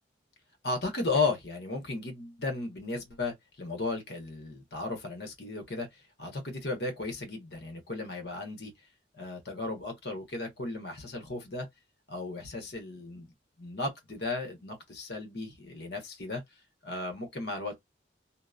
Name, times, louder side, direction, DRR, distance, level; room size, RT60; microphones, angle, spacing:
voice 1, 0.6-8.7 9.2-11.7 12.1-13.3 13.6-16.4 16.8-17.8, left 3 dB, 60° left, 1.1 m, -35 dB
2.9 x 2.1 x 2.4 m
head